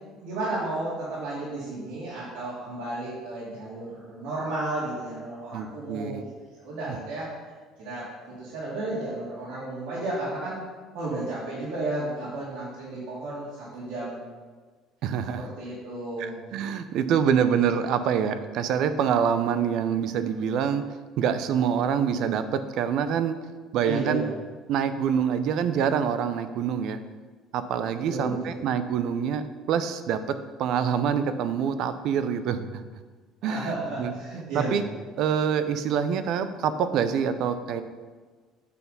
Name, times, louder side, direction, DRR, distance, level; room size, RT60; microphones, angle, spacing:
voice 1, 0.2-6.2 6.6-7.3 7.8-8.1 8.4-10.6 10.9-14.2 15.4-16.4 23.8-24.3 28.1-28.5 33.4-34.8, right 2 dB, 90° right, -8 dB, 2.2 m, -33 dB
voice 2, 5.5-6.2 15.0-15.5 16.2-20.8 21.2-23.4 23.7-24.3 24.7-27.0 27.5-30.2 30.6-32.8 33.4-34.1 34.5-34.8 35.2-37.8, right 7 dB, 60° right, 11 dB, 0.5 m, -26 dB
8.2 x 4.1 x 5.3 m, 1.4 s
cardioid pair, 140°, 0 cm